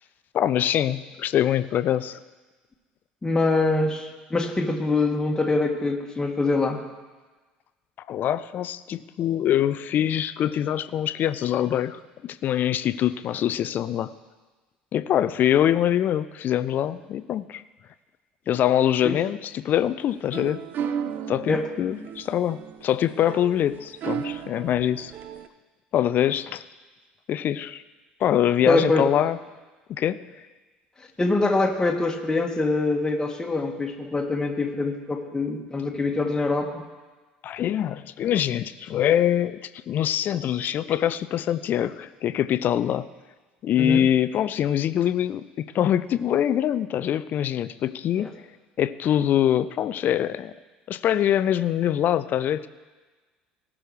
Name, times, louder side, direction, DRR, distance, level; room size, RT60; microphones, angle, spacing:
voice 1, 0.3-2.2 8.1-14.1 14.9-17.6 18.5-20.6 21.3-25.1 25.9-26.6 27.3-27.8 28.2-29.4 29.9-30.2 37.4-43.1 43.6-48.3 48.8-50.5 50.9-52.7, left 11 dB, 40° left, 15 dB, 0.5 m, -24 dB
voice 2, 3.2-6.8 19.0-19.2 21.5-21.6 28.6-29.1 31.2-36.8 43.8-44.0 48.2-48.3, left 3 dB, 15° left, 2 dB, 1.6 m, -24 dB
sound 1, 20.0-25.5, right 8 dB, 45° right, 0.6 m, -34 dB
18.0 x 6.2 x 4.9 m, 1.3 s
figure-of-eight pair, 60°, 5 cm